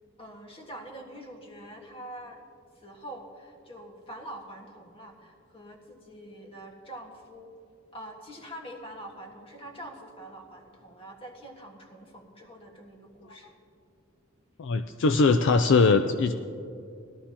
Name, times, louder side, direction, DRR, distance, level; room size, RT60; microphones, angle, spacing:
voice 1, 0.2-2.4 2.7-7.5 7.9-13.6, right 1 dB, 25° left, 1 dB, 1.5 m, -45 dB
voice 2, 14.6-16.3, left 4 dB, 60° left, 8 dB, 0.4 m, -21 dB
19.0 x 12.5 x 2.9 m, 2.5 s
head